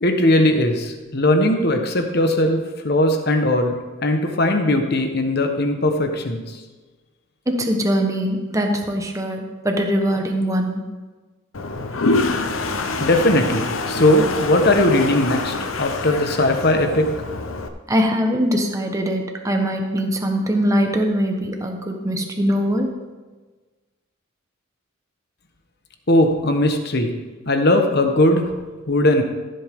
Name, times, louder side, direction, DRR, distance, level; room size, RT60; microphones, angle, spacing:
voice 1, 0.0-6.6 12.5-17.1 26.1-27.1 27.5-28.5 28.9-29.2, left 1 dB, 50° left, 5 dB, 1.2 m, -19 dB
voice 2, 7.5-10.8 17.9-22.9, equal, 15° right, 3 dB, 1.1 m, -22 dB
Toilet flush, 11.5-17.7, left 3 dB, 80° left, 0.9 m, -25 dB
15.0 x 7.9 x 3.7 m, 1.3 s
head